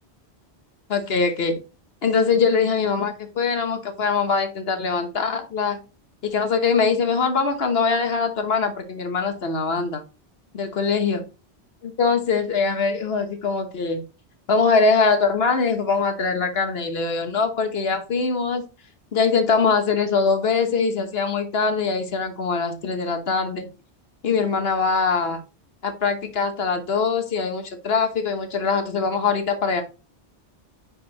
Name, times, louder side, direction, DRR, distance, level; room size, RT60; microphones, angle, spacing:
voice 1, 0.9-1.6 2.0-5.8 6.2-10.0 10.5-11.2 11.8-14.0 14.5-18.6 19.1-23.7 24.2-25.4 25.8-29.8, left 5 dB, 65° left, 7 dB, 1.3 m, -22 dB
9.5 x 4.2 x 2.9 m, 0.32 s
omnidirectional pair, 1.1 m